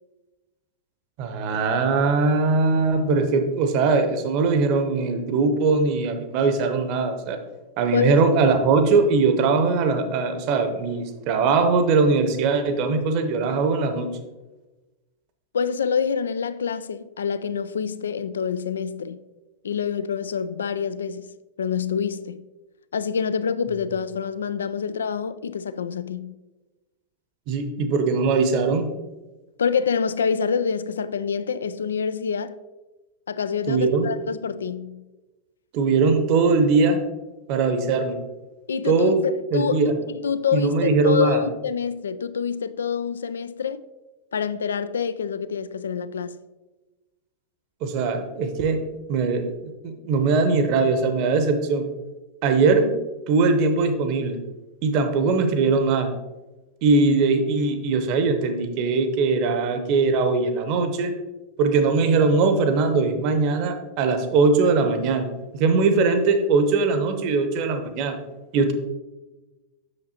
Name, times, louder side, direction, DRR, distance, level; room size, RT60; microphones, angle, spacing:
voice 1, 1.2-7.4 7.8-14.2 27.5-28.9 33.7-34.1 35.7-37.0 37.5-38.2 38.9-39.2 39.5-39.9 40.5-41.4 47.8-48.8 49.1-51.9 52.4-52.9 53.3-54.4 54.8-56.1 56.8-61.1 61.6-65.3 65.5-68.2 68.5-68.7, right 4 dB, 45° right, 0.8 m, -21 dB
voice 2, 15.5-19.2 19.6-21.3 21.6-22.5 22.9-26.3 29.6-32.6 33.3-35.0 38.7-43.8 44.3-46.4, left 6 dB, 70° left, 0.3 m, -26 dB
8.2 x 6.5 x 2.8 m
figure-of-eight pair, 90°, 0 cm